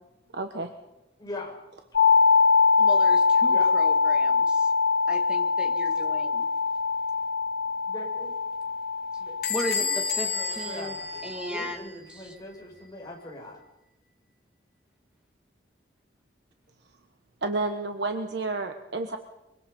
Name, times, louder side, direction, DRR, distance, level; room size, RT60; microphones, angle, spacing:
voice 1, 0.3-0.7 17.4-19.2, right 3 dB, 65° right, 5 dB, 1.3 m, -30 dB
voice 2, 1.2-1.5 3.5-3.7 7.9-8.3 9.2-13.6, left 1 dB, 20° left, -1 dB, 5.8 m, -41 dB
sound 1, 1.9-11.7, left 5 dB, 85° left, 4.0 m, -23 dB
voice 3, 2.8-4.7 5.1-6.5 9.5-11.0 11.2-12.4, equal, 5° right, 3 dB, 2.3 m, -37 dB
Bell / Squeak, 9.4-11.9, left 5 dB, 55° left, 4.4 m, -31 dB
24.0 x 23.0 x 5.4 m, 0.99 s
head